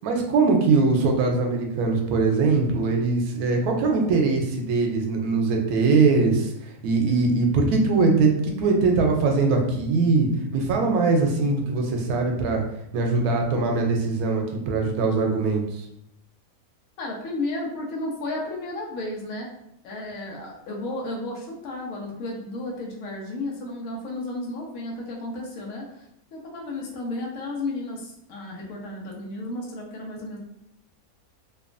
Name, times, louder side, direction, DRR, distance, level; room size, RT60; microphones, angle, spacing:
voice 1, 0.0-12.6 12.9-15.8, right 3 dB, 90° right, 2 dB, 1.1 m, -22 dB
voice 2, 17.0-19.5 19.8-26.0 26.3-30.4, left 2 dB, 75° left, -1 dB, 1.0 m, -33 dB
2.9 x 2.3 x 2.4 m, 0.77 s
omnidirectional pair, 1.5 m